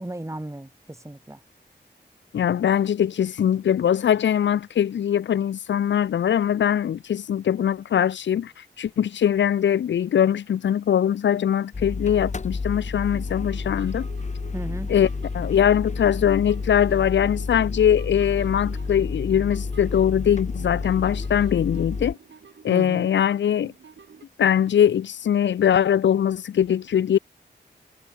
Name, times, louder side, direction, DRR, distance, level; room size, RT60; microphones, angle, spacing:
voice 1, 0.0-1.4 14.5-14.9 22.7-23.1, right 1 dB, 15° right, 2.9 m, -35 dB
voice 2, 2.3-8.5 8.8-14.1 14.9-15.1 15.3-22.2 22.6-23.7 24.4-27.2, left 9 dB, 85° left, 0.4 m, -21 dB
sound 1, 11.7-22.1, left 4 dB, 40° left, 1.0 m, -30 dB
sound 2, 12.2-12.9 13.1-24.2, right 6 dB, 90° right, 2.3 m, -49 dB
wide cardioid pair, 85°, 18 cm